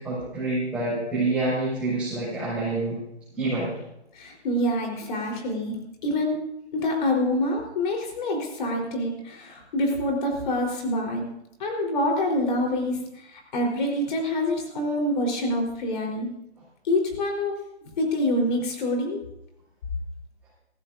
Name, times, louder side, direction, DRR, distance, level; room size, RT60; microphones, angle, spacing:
voice 1, 0.0-3.0 3.4-3.7, right 2 dB, 5° right, -12 dB, 5.6 m, -27 dB
voice 2, 4.2-5.8 6.0-6.4 6.7-11.2 11.6-13.0 13.3-16.3 16.8-17.6 18.0-19.2, left 1 dB, 45° left, 1 dB, 4.1 m, -26 dB
21.0 x 15.0 x 2.6 m, 0.83 s
hypercardioid pair, 160°, 34 cm